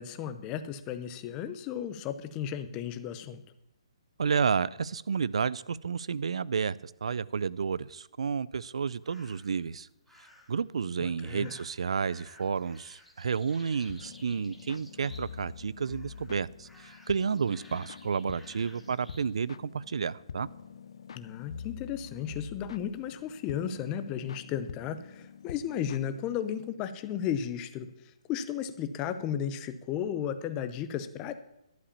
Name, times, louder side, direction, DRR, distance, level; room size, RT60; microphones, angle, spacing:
voice 1, 0.0-3.4 11.0-11.5 21.2-27.9 28.3-31.3, left 9 dB, 20° left, 11 dB, 0.6 m, -34 dB
voice 2, 4.2-9.9 10.5-20.5, right 6 dB, 70° right, 21 dB, 0.4 m, -31 dB
sound 1, 9.0-9.6 10.1-10.6 11.2-15.5 15.8-16.3 16.6-19.3, left 1 dB, ahead, 1.0 m, -56 dB
sound 2, 13.9-26.7, left 7 dB, 60° left, 0.3 m, -46 dB
11.5 x 5.0 x 8.5 m, 0.87 s
hypercardioid pair, 160°, 3 cm